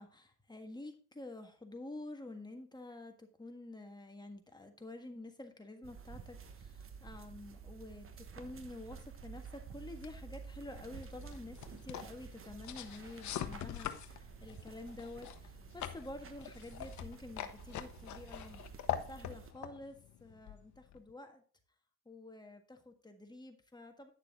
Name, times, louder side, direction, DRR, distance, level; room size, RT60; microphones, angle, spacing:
voice 1, 0.0-18.6 19.1-21.4 22.0-24.1, left 2 dB, 15° left, 5 dB, 1.6 m, -49 dB
sound 1, 5.8-19.5, right 6 dB, 45° right, 1.2 m, -51 dB
sound 2, 10.0-21.1, left 10 dB, 70° left, 0.9 m, -44 dB
10.0 x 6.7 x 3.6 m, 0.41 s
cardioid pair, 90°, 30 cm